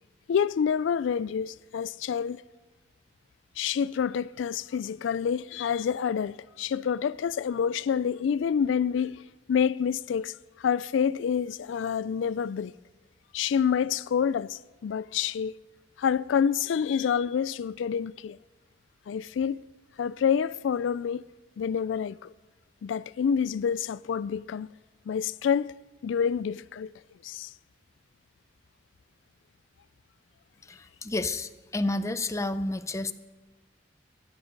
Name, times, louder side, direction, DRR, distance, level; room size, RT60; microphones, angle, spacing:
voice 1, 0.3-2.4 3.6-9.2 9.5-12.7 13.3-15.6 16.0-18.4 19.1-19.6 20.0-21.2 21.6-22.3 22.8-24.7 25.1-25.7 26.0-26.9 27.2-27.5, left 7 dB, 90° left, 0.3 m, -27 dB
voice 2, 30.7-33.1, left 2 dB, 15° left, 0.5 m, -30 dB
16.5 x 11.0 x 5.3 m
head